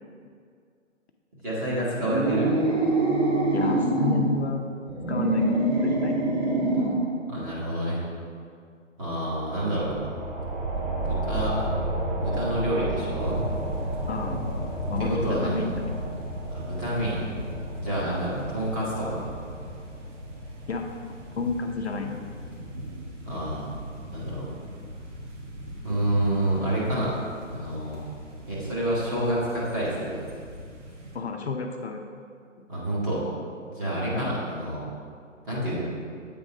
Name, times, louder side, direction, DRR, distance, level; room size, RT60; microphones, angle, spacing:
voice 1, 1.4-2.6 7.3-8.0 9.0-10.0 11.0-11.7 12.2-13.4 15.0-15.6 16.5-17.2 17.8-19.3 23.2-23.8 24.1-24.5 25.8-28.0 28.4-30.2 32.7-33.2 33.7-34.8 35.4-35.8, right 1 dB, 15° right, -7 dB, 1.1 m, -28 dB
sound 1, 2.0-4.3 4.9-7.1, right 2 dB, 35° right, 1.2 m, -24 dB
voice 2, 3.5-4.6 5.1-6.3 14.1-14.4 14.9-15.7 18.0-18.2 20.7-20.8 21.4-22.2 31.1-32.0 34.1-34.3, left 4 dB, 55° left, 3 dB, 0.6 m, -31 dB
sound 2, 9.4-20.6, right 1 dB, 85° right, 1.9 m, -33 dB
sound 3, 13.2-31.2, equal, 65° right, 1.6 m, -38 dB
8.3 x 3.7 x 5.2 m, 2.2 s
hypercardioid pair, 160°, 39 cm